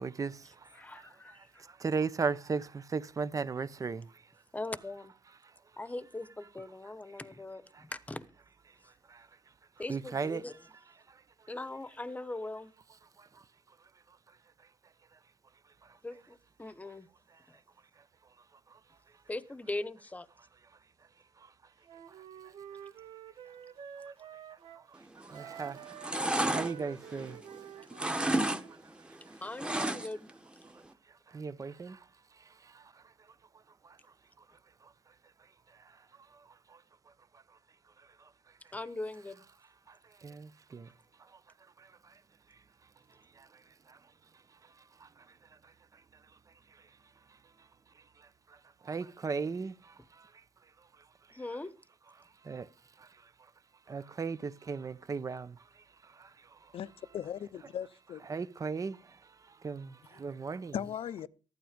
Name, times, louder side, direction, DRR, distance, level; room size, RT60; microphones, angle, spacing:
voice 1, 0.0-4.2 7.7-7.8 9.1-9.3 9.9-10.4 11.1-11.2 13.2-13.4 15.8-16.0 18.7-18.8 21.4-21.5 24.1-24.2 24.8-27.4 27.8-27.9 28.4-28.6 29.3-29.4 31.3-32.1 32.3-33.0 33.8-34.0 34.8-34.9 35.7-36.0 36.3-36.8 38.0-38.3 39.9-40.9 41.2-41.4 41.8-42.2 43.3-44.0 44.6-44.7 45.0-45.3 45.6-46.0 48.2-48.6 48.8-50.3 52.4-52.7 53.0-53.3 53.9-56.7 58.3-60.8, right 5 dB, 35° right, 0.9 m, -38 dB
voice 2, 0.7-1.7 4.5-5.1 5.8-8.2 9.8-10.6 11.5-12.7 16.0-17.1 17.5-17.6 19.3-20.3 29.4-30.3 38.7-39.4 51.3-51.7, left 2 dB, 15° left, 1.1 m, -40 dB
Wind instrument woodwind instrument, 21.9-24.9 25.3-28.8, right 8 dB, 65° right, 1.7 m, -49 dB
sound 1, 25.2-25.5 25.8-27.6 27.9-28.6 28.9-30.3 30.7-30.8, right 1 dB, 10° right, 1.4 m, -31 dB
voice 3, 56.7-58.3 60.1-60.2 60.7-61.3, left 9 dB, 70° left, 0.8 m, -38 dB
15.0 x 12.0 x 5.2 m
cardioid pair, 110°, 10 cm